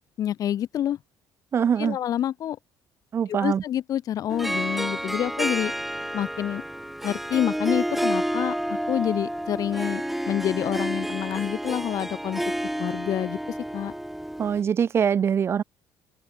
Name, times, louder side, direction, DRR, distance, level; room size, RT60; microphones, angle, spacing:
voice 1, 0.2-1.0 1.8-2.6 3.3-5.7 6.1-6.6 7.0-12.4 12.8-13.4 13.7-13.9, left 11 dB, 45° left, 6.3 m, -27 dB
voice 2, 1.5-2.0 3.1-3.6 14.4-15.6, right 7 dB, 30° right, 1.5 m, -23 dB
Harp, 4.3-14.6, right 1 dB, ahead, 2.0 m, -30 dB
cardioid pair, 165°, 8 cm